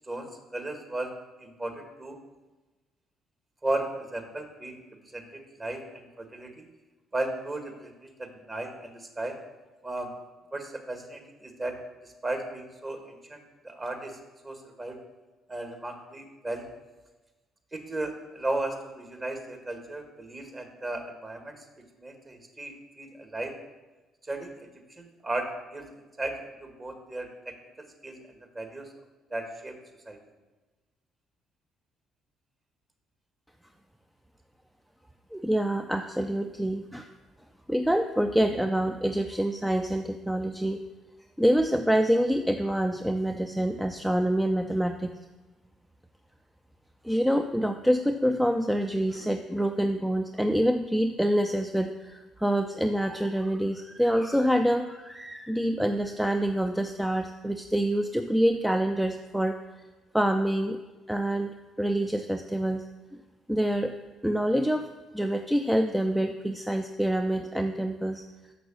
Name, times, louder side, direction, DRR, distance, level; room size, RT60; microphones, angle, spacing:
voice 1, 0.5-1.1 1.4-2.1 3.6-4.8 5.1-6.7 7.1-8.1 8.5-9.3 9.8-10.1 10.5-11.7 12.0-13.4 13.6-14.1 14.4-15.0 15.5-16.6 17.7-21.5 22.0-23.5 24.3-24.7 25.0-26.3 26.6-27.3 28.0-28.2 28.6-28.9 29.3-29.7 30.1-30.2, right 2 dB, 25° right, 4 dB, 1.8 m, -35 dB
voice 2, 35.3-37.1 37.7-40.8 41.4-45.2 47.0-59.6 60.1-60.8 61.1-62.9 63.5-63.9 64.2-68.2, equal, 5° right, 6 dB, 0.5 m, -26 dB
6.7 x 6.1 x 6.3 m, 1.2 s
figure-of-eight pair, 45°, 0 cm